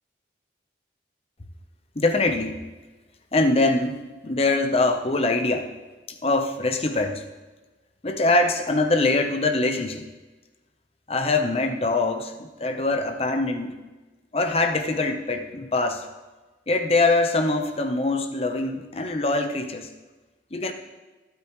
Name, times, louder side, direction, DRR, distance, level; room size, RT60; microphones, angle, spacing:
voice 1, 2.0-2.6 3.3-5.7 6.1-7.2 8.0-10.1 11.1-13.7 14.3-16.1 16.7-19.9 20.5-20.7, left 2 dB, 35° left, 6 dB, 0.9 m, -23 dB
23.0 x 8.5 x 3.2 m, 1.2 s
head